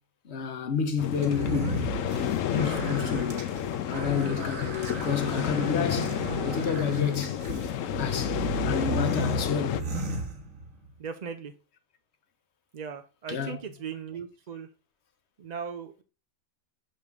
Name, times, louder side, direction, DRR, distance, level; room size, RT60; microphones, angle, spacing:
voice 1, 0.2-1.9 2.5-3.4 3.8-7.4 8.0-8.4 8.6-9.9 13.3-13.7, left 6 dB, 60° left, 1.2 m, -30 dB
sound 1, 1.0-9.8, left 10 dB, 80° left, 1.0 m, -31 dB
sound 2, 1.2-10.9, right 4 dB, 75° right, 1.8 m, -35 dB
voice 2, 11.0-11.5 12.7-14.7 15.4-16.0, right 6 dB, 60° right, 0.4 m, -38 dB
6.6 x 6.5 x 3.6 m
omnidirectional pair, 1.4 m